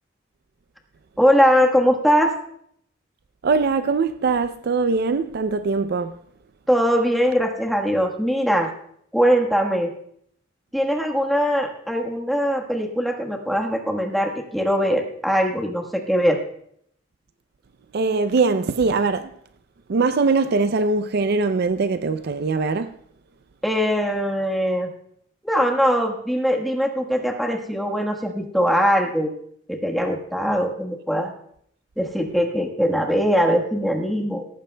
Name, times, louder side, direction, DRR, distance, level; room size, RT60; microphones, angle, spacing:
voice 1, 1.2-2.3 6.7-8.7 9.1-9.9 10.7-16.4 23.6-24.9 25.4-29.3 29.7-31.3 32.0-34.4, equal, ahead, 1.3 m, -21 dB
voice 2, 3.4-6.1 17.9-19.3 19.9-22.9, right 4 dB, 55° right, 0.4 m, -21 dB
17.5 x 14.5 x 2.2 m
head